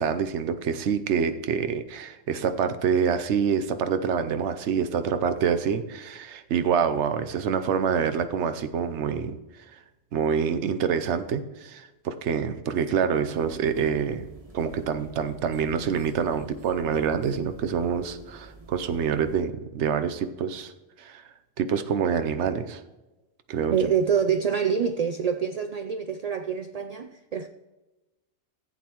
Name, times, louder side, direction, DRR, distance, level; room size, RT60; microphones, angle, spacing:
voice 1, 0.0-9.4 9.7-9.8 10.1-14.3 14.5-20.7 21.0-21.2 21.6-22.8 23.5-23.8, right 7 dB, 80° right, 10 dB, 1.0 m, -26 dB
sound 1, 13.3-19.4, right 2 dB, 30° right, 1.4 m, -49 dB
voice 2, 23.7-27.5, right 7 dB, 60° right, 8 dB, 0.4 m, -26 dB
15.5 x 8.2 x 3.0 m, 1.1 s
omnidirectional pair, 1.2 m